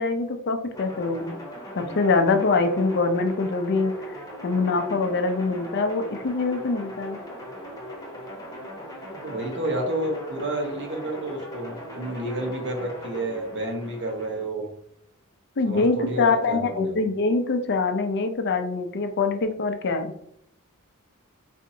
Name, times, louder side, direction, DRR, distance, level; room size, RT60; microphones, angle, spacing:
voice 1, 0.0-1.3 1.8-3.9 4.4-7.2 15.6-20.1, left 3 dB, 55° left, 7 dB, 0.5 m, -24 dB
sound 1, 0.7-14.5, equal, 15° left, 0.9 m, -39 dB
voice 2, 9.1-14.7 15.7-17.0, right 1 dB, 55° right, 0 dB, 0.9 m, -30 dB
4.1 x 2.6 x 2.7 m, 0.71 s
head